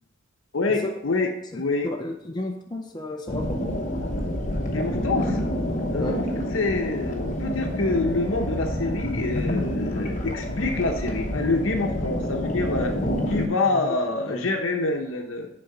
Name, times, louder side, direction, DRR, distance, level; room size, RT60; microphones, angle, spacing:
voice 1, 0.5-1.3 1.6-1.9 4.7-5.4 5.9-6.3 6.5-12.9 13.3-15.5, left 3 dB, 90° left, 3 dB, 0.8 m, -26 dB
voice 2, 1.5-3.8 6.0-6.2 13.6-14.0 14.3-14.4, left 1 dB, 20° left, 2 dB, 0.5 m, -33 dB
sound 1, 3.3-13.5, equal, 40° left, 0.9 m, -28 dB
6.5 x 4.0 x 5.8 m, 0.82 s
head